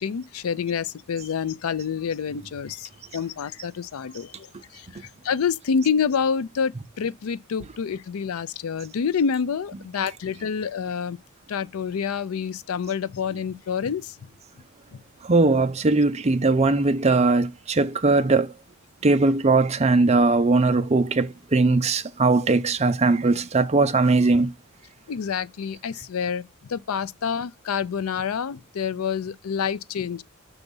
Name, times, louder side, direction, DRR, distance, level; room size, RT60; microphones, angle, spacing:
voice 1, 0.0-4.5 4.7-4.9 5.2-11.2 11.5-14.1 25.1-26.4 26.7-30.2, left 6 dB, 85° left, 0.4 m, -27 dB
voice 2, 15.3-18.5 19.0-24.5, right 3 dB, 30° right, 0.5 m, -20 dB
5.9 x 4.0 x 5.3 m
head